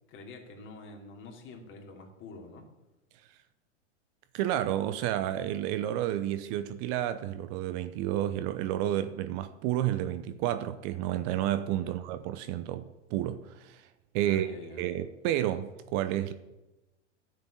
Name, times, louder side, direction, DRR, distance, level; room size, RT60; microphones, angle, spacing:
voice 1, 0.1-2.7 11.8-11.9 14.2-14.8, left 3 dB, 35° left, 2.8 m, -47 dB
voice 2, 4.3-13.9 14.1-16.3, right 12 dB, 45° right, 0.8 m, -31 dB
10.0 x 6.8 x 8.8 m
hypercardioid pair, 110°, 36 cm